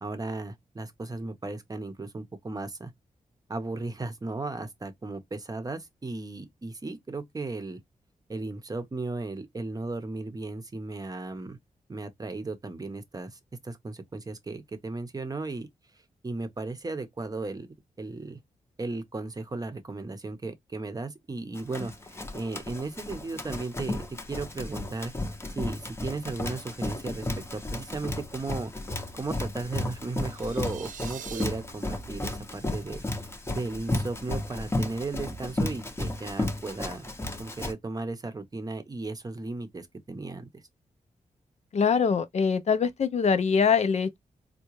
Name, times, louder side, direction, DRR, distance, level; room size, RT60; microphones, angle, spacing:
voice 1, 0.0-2.9 3.5-7.8 8.3-11.6 11.9-15.7 16.2-17.7 18.0-18.4 18.8-25.1 25.5-28.7 29.2-33.0 33.5-37.1 37.4-40.6, right 3 dB, 30° right, 0.7 m, -35 dB
Run, 21.6-37.7, left 2 dB, 20° left, 0.7 m, -34 dB
sound 1, 30.2-31.4, right 9 dB, 75° right, 0.4 m, -42 dB
voice 2, 41.7-44.2, left 6 dB, 55° left, 0.5 m, -23 dB
3.6 x 2.2 x 3.0 m
cardioid pair, 85°, 13 cm